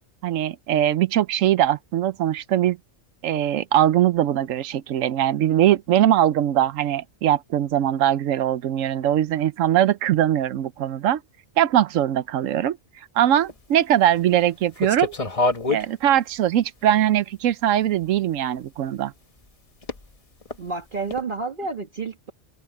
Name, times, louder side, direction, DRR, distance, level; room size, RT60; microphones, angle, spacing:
voice 1, 0.2-2.8 3.2-11.2 11.6-12.8 13.2-15.1 15.7-19.1, right 11 dB, 85° right, 1.0 m, -21 dB
sound 1, 13.4-13.5 14.1-14.3 14.8-15.9 16.6-16.7 17.7-17.8 19.8-20.1 20.4-20.6 21.1-21.2, left 3 dB, 30° left, 1.2 m, -25 dB
voice 2, 20.6-22.3, right 4 dB, 40° right, 1.7 m, -30 dB
open air
omnidirectional pair, 1.3 m